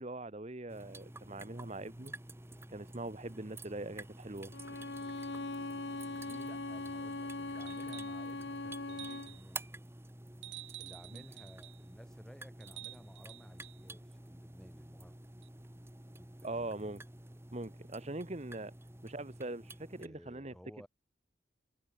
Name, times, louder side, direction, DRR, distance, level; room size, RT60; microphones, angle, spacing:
voice 1, 0.0-2.1 2.7-4.5 11.1-11.2 16.4-17.0 17.5-18.7 19.0-20.5, right 2 dB, 35° right, 1.1 m, -42 dB
sound 1, 0.7-20.1, right 2 dB, 15° right, 1.2 m, -50 dB
Bowed string instrument, 4.5-9.4, left 2 dB, 65° left, 1.3 m, -41 dB
voice 2, 6.1-9.7 10.8-15.2 16.2-17.0 20.0-20.9, equal, 5° left, 4.7 m, -56 dB
sound 2, 7.7-8.2 8.9-9.5 10.4-11.8 12.6-13.8 15.4-15.5, right 16 dB, 80° right, 1.3 m, -50 dB
head